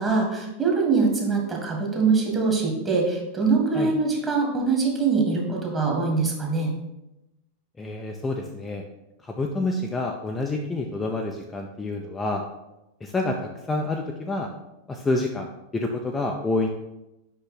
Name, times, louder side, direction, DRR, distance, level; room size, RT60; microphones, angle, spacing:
voice 1, 0.0-6.7, right 4 dB, 20° right, -1 dB, 1.8 m, -23 dB
voice 2, 7.8-8.8 9.2-12.4 13.0-14.5 14.9-16.7, left 2 dB, 15° left, 1 dB, 0.6 m, -28 dB
5.6 x 5.2 x 4.1 m, 0.93 s
figure-of-eight pair, 90°, 0 cm